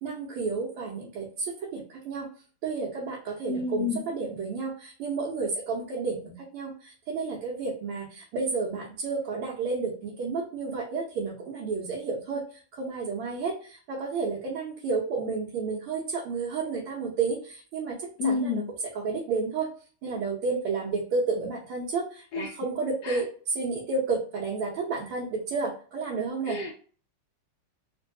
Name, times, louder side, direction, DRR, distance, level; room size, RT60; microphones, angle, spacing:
voice 1, 0.0-2.3 2.6-12.4 12.7-18.6 18.9-19.7 20.0-26.6, right 4 dB, 85° right, -3 dB, 1.7 m, -31 dB
voice 2, 3.5-4.0 18.2-18.7 22.3-22.5 23.0-23.2 26.5-26.7, left 4 dB, 80° left, 1 dB, 0.9 m, -29 dB
3.8 x 2.6 x 2.6 m, 0.41 s
omnidirectional pair, 2.3 m